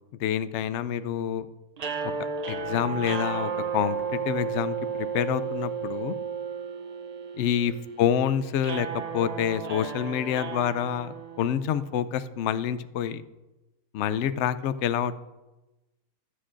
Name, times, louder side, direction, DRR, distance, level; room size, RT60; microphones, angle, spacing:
voice 1, 0.2-1.5 2.0-2.1 2.5-6.2 7.4-7.7 8.0-13.2 13.9-15.2, left 9 dB, 70° left, 13 dB, 0.7 m, -27 dB
sound 1, 1.8-12.0, right 6 dB, 65° right, 0.4 m, -34 dB
18.5 x 8.0 x 2.5 m, 1.1 s
omnidirectional pair, 1.6 m